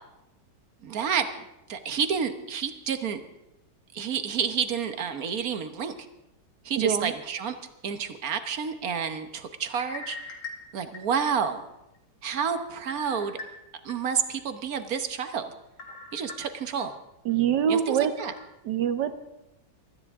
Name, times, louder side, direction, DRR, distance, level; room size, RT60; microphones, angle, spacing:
voice 1, 0.8-3.2 3.9-5.9 6.6-7.5 7.8-10.2 10.7-11.6 12.2-13.4 13.8-15.5 16.1-16.9 17.7-18.3, right 7 dB, 60° right, 9 dB, 1.4 m, -29 dB
voice 2, 6.8-7.1 17.2-18.1 18.6-19.1, right 9 dB, 75° right, 10 dB, 1.6 m, -24 dB
sound 1, 9.7-11.5 11.9-12.0 12.9-13.9 14.4-14.5 15.8-16.8 17.3-17.4 18.2-18.4, left 3 dB, 85° left, 2.6 m, -42 dB
23.5 x 13.0 x 3.6 m, 0.91 s
omnidirectional pair, 1.9 m